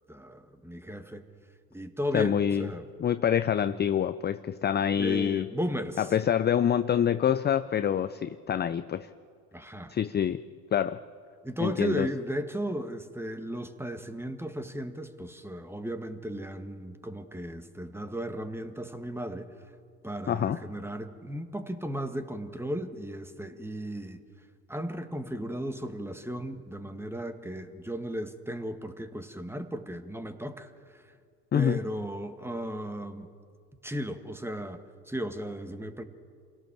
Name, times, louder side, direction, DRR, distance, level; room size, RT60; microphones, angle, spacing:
voice 1, 0.1-1.3 1.7-2.8 5.0-6.1 9.5-9.9 11.4-19.5 20.0-24.2 24.7-31.0 31.5-33.3 33.8-36.0, equal, 5° right, 8 dB, 1.8 m, -35 dB
voice 2, 2.1-2.7 3.0-5.5 6.0-9.1 9.9-10.4 10.7-11.0 11.6-12.1 20.3-20.6 31.5-31.8, left 9 dB, 20° left, 12 dB, 0.6 m, -26 dB
27.5 x 17.0 x 7.4 m, 2.2 s
hypercardioid pair, 75°, 50 cm